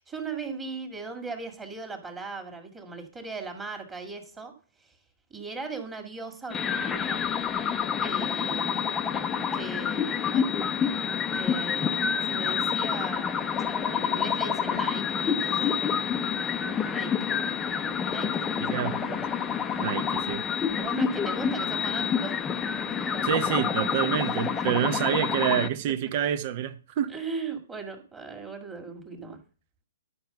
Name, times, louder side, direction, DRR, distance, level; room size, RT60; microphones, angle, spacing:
voice 1, 0.0-4.5 4.8-5.0 5.3-7.3 8.0-9.1 9.5-10.5 11.3-16.0 16.3-17.4 17.7-19.0 19.7-19.8 20.8-22.4 22.8-23.7 24.2-24.7 27.1-29.4, right 4 dB, 15° right, 2.0 m, -39 dB
sound 1, 6.5-25.7, left 7 dB, 15° left, 0.7 m, -28 dB
voice 2, 18.6-19.2 19.8-20.4 23.2-27.1, right 10 dB, 40° right, 1.0 m, -28 dB
11.5 x 4.7 x 6.6 m
hypercardioid pair, 145°, 0 cm